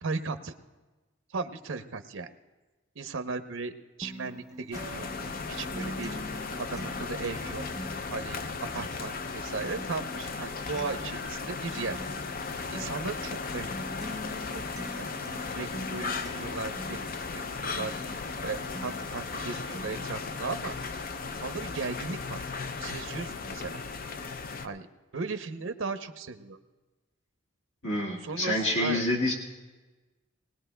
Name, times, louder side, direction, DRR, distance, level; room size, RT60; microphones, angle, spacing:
voice 1, 0.0-0.5 1.3-2.3 3.0-3.7 4.0-6.2 6.6-7.6 8.1-8.4 8.7-12.0 12.7-13.7 14.5-14.7 15.0-15.1 15.5-17.0 17.3-18.0 18.4-20.7 21.4-22.4 22.8-23.8 24.6-24.9 25.1-26.6 28.2-29.1, right 4 dB, 75° right, 8 dB, 0.7 m, -36 dB
Acoustic guitar, 4.0-20.0, equal, 15° right, 0.5 m, -44 dB
sound 1, 4.7-24.7, left 4 dB, 45° left, 0.5 m, -36 dB
voice 2, 27.8-29.3, left 1 dB, 75° left, -1 dB, 1.7 m, -27 dB
20.5 x 19.5 x 2.2 m, 1.2 s
head